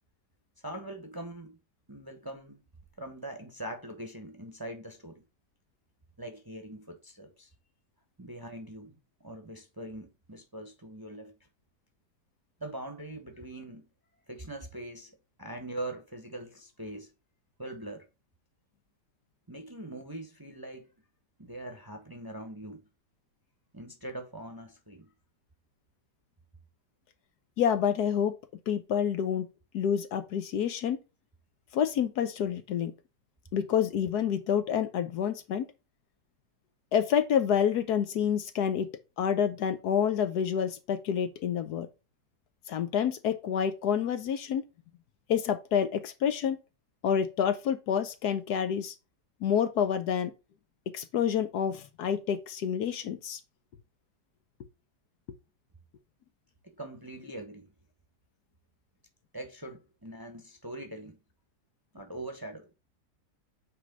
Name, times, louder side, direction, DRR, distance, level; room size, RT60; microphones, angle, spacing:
voice 1, 0.6-1.6 1.9-2.6 3.0-5.3 6.2-7.5 8.2-11.3 12.6-13.8 14.3-17.1 17.6-18.1 19.5-20.9 21.4-22.9 23.7-25.1 56.6-57.7 59.3-61.2 61.9-62.7, right 1 dB, 15° right, 0.9 m, -42 dB
voice 2, 27.6-28.3 28.7-29.5 29.7-31.0 31.7-32.9 33.5-35.7 36.9-38.9 39.2-41.9 42.7-44.6 45.3-46.6 47.0-48.9 49.4-50.3 50.9-53.4, left 8 dB, 70° left, 1.2 m, -28 dB
8.5 x 3.3 x 3.6 m
omnidirectional pair, 1.9 m